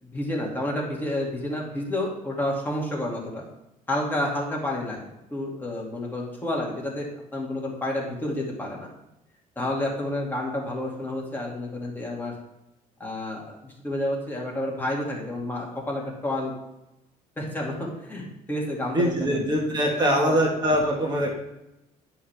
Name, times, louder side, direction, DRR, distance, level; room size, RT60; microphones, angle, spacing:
voice 1, 0.0-3.4 3.9-7.1 7.3-8.9 9.6-12.3 13.0-16.5 17.4-19.4 20.0-20.4, left 1 dB, 15° left, -3 dB, 2.3 m, -30 dB
voice 2, 18.9-21.3, equal, 30° right, -1 dB, 1.6 m, -23 dB
11.0 x 5.6 x 3.4 m, 0.90 s
cardioid pair, 120°, 15 cm